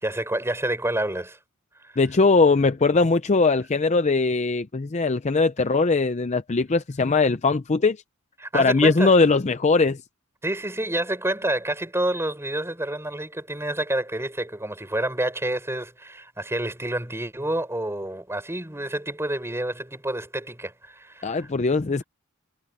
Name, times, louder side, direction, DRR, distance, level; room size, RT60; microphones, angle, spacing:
voice 1, 0.0-1.4 1.8-1.9 8.4-9.1 10.4-21.5, right 1 dB, 10° right, 5.7 m, -28 dB
voice 2, 2.0-8.0 8.5-10.0 21.2-22.0, left 3 dB, 30° left, 0.5 m, -20 dB
head